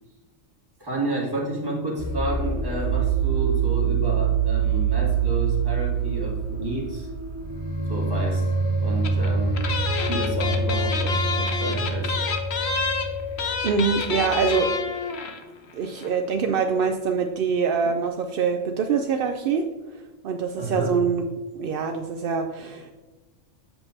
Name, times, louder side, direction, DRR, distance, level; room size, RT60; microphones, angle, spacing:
voice 1, 0.8-7.1 7.9-8.5 8.8-9.7 10.1-12.1 20.6-20.9, right 1 dB, 15° right, -4 dB, 1.9 m, -30 dB
sound 1, 2.0-14.6, right 5 dB, 30° left, 1.3 m, -25 dB
sound 2, 9.0-9.3 9.5-15.4 15.7-15.8 16.0-16.2, left 4 dB, 55° left, 1.0 m, -28 dB
voice 2, 13.6-14.7 15.7-19.7 20.2-21.2 21.5-22.9, right 5 dB, 65° right, 5 dB, 0.5 m, -24 dB
7.8 x 7.2 x 2.7 m, 1.2 s
omnidirectional pair, 1.4 m